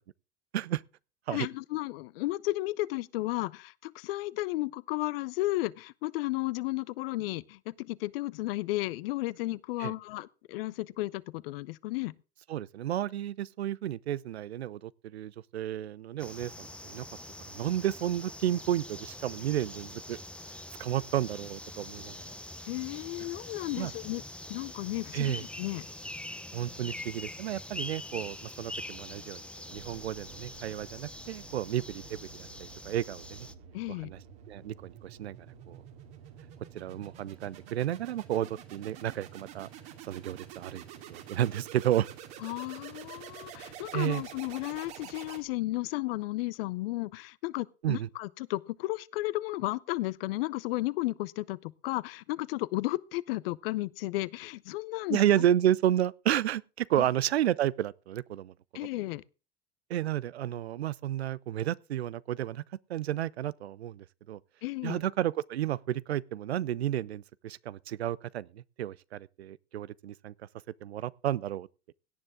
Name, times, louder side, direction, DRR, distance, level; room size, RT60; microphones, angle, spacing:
voice 1, 1.3-12.1 22.7-24.2 24.5-25.8 33.7-34.1 42.4-55.4 58.7-59.2 64.6-65.0, left 19 dB, 65° left, 0.7 m, -33 dB
voice 2, 12.5-17.1 17.5-20.2 20.8-22.2 23.8-23.9 25.1-25.4 26.5-33.5 34.0-34.2 34.5-35.4 35.7-35.8 36.7-39.7 40.1-40.8 41.1-42.1 43.9-44.2 47.8-48.1 55.1-58.5 59.9-62.6 62.9-64.4 64.8-70.3 70.8-71.7, right 12 dB, 85° right, 0.6 m, -31 dB
sound 1, 16.2-33.5, left 1 dB, 5° left, 0.8 m, -44 dB
sound 2, 29.7-45.8, right 9 dB, 60° right, 2.6 m, -49 dB
17.5 x 9.8 x 3.7 m
hypercardioid pair, 75°, 31 cm